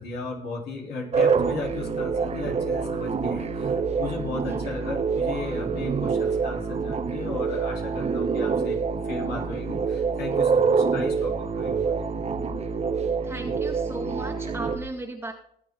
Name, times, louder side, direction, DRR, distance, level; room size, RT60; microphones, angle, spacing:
voice 1, 0.0-12.1, left 3 dB, 75° left, -1 dB, 3.5 m, -35 dB
sound 1, 1.1-14.8, right 5 dB, 40° right, 1.4 m, -26 dB
voice 2, 4.5-4.8 13.2-15.3, right 2 dB, 15° right, 1 dB, 2.0 m, -36 dB
19.5 x 8.4 x 3.8 m, 0.68 s
supercardioid pair, 65°, 17 cm